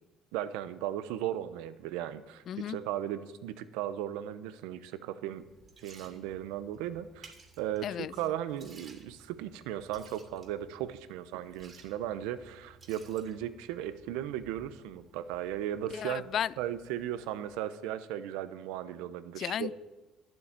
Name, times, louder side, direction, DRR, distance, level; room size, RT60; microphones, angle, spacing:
voice 1, 0.3-5.4 5.8-16.2 16.6-19.7, right 11 dB, 85° right, 12 dB, 0.8 m, -36 dB
voice 2, 2.5-2.8 7.8-8.2 15.9-16.5 19.4-19.7, left 10 dB, 55° left, 21 dB, 0.3 m, -34 dB
Liquid, 5.3-17.6, right 3 dB, 35° right, 2.5 m, -58 dB
12.0 x 7.8 x 8.8 m, 1.1 s
cardioid pair, 95°, 0 cm